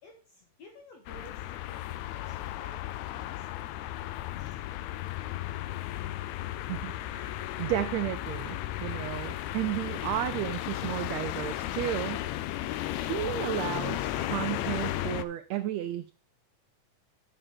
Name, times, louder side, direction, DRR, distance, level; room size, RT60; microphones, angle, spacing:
voice 1, 0.0-4.0 4.4-5.2, left 2 dB, 60° left, 2 dB, 2.2 m, -54 dB
sound 1, 1.1-15.2, left 14 dB, 80° left, 1.8 m, -35 dB
voice 2, 6.7-12.3 12.9-16.1, right 13 dB, 90° right, 11 dB, 1.5 m, -33 dB
8.7 x 6.2 x 4.5 m, 0.37 s
omnidirectional pair, 3.7 m